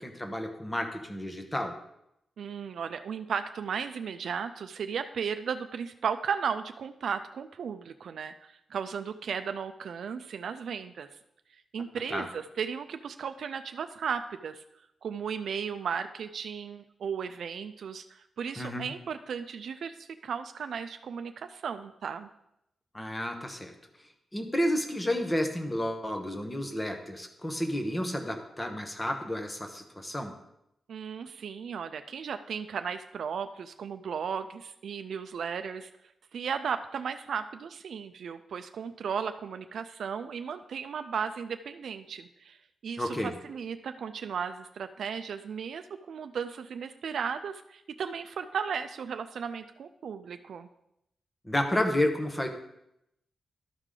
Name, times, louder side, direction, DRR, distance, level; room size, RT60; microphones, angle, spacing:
voice 1, 0.0-1.7 12.1-12.3 18.6-18.9 22.9-23.7 24.3-30.3 43.0-43.3 51.4-52.5, left 1 dB, 10° left, 5 dB, 0.9 m, -31 dB
voice 2, 2.4-11.1 11.7-14.6 15.0-22.3 30.9-35.9 36.3-50.7, right 7 dB, 70° right, 9 dB, 0.4 m, -35 dB
12.5 x 4.9 x 3.7 m, 0.82 s
wide cardioid pair, 165°, 0 cm